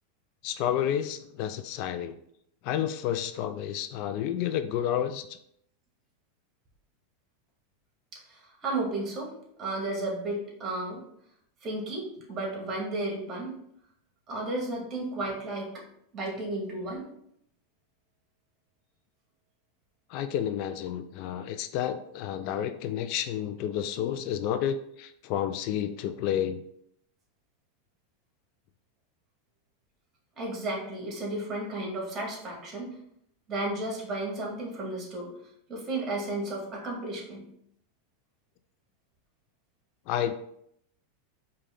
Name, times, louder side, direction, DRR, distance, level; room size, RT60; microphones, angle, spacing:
voice 1, 0.4-2.2 2.6-5.4 20.1-26.6 40.1-40.3, left 10 dB, 55° left, 10 dB, 0.3 m, -30 dB
voice 2, 8.3-11.1 11.6-13.6 14.3-15.8 16.1-17.1 30.4-33.0 33.5-35.4 35.7-37.4, right 2 dB, 30° right, -1 dB, 1.9 m, -33 dB
4.9 x 2.8 x 3.7 m, 0.71 s
supercardioid pair, 120°, 0 cm